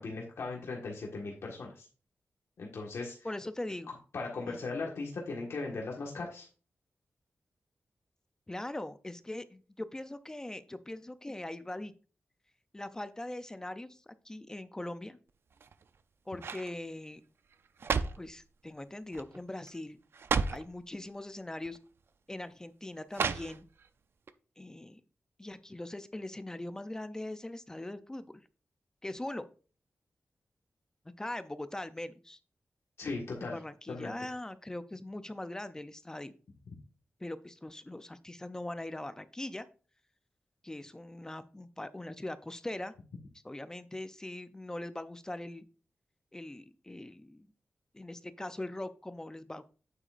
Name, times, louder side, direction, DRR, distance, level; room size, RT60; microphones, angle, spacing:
voice 1, 0.0-1.9 2.6-3.3 4.1-6.5 33.0-33.6 33.9-34.1, left 3 dB, 75° left, -1 dB, 1.6 m, -38 dB
voice 2, 3.2-3.9 4.5-4.6 8.5-11.9 12.7-15.2 16.3-17.2 18.2-20.0 20.5-21.8 22.3-23.7 24.6-25.0 25.4-28.3 29.0-29.5 31.2-32.4 33.4-36.3 37.2-39.7 40.6-42.9 43.4-45.6 46.3-47.5 47.9-49.6, left 1 dB, 15° left, 12 dB, 0.5 m, -41 dB
sound 1, 15.5-16.0 16.4-16.7 17.5-18.3 19.1-19.4 19.7-19.8 20.1-20.7 21.6-21.8 23.1-23.9 24.3-24.4, right 5 dB, 60° right, 0.5 m, -33 dB
9.1 x 7.8 x 2.5 m, 0.37 s
wide cardioid pair, 165°, 5 cm